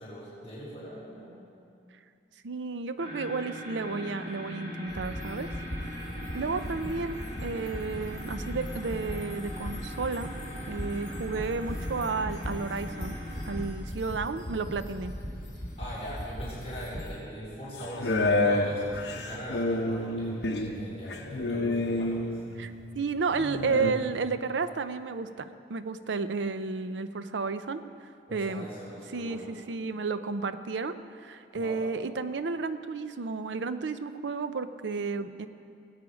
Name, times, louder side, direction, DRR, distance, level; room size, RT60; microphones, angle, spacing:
voice 1, 0.0-1.5 15.8-22.3 28.3-29.5 31.5-31.8, equal, 30° left, -12 dB, 4.0 m, -41 dB
voice 2, 2.4-5.5 5.8-5.9 6.3-10.4 10.7-13.2 13.5-15.1 22.6-27.8 28.3-28.7 29.1-35.5, right 4 dB, 85° right, 11 dB, 0.6 m, -32 dB
sound 1, 3.0-13.6, equal, 55° right, 2.3 m, -41 dB
sound 2, 4.9-17.1, equal, 50° left, 4.0 m, -39 dB
sound 3, 17.8-22.6 23.3-23.9, left 2 dB, 75° left, 1.0 m, -29 dB
19.0 x 8.5 x 5.1 m, 2.5 s
head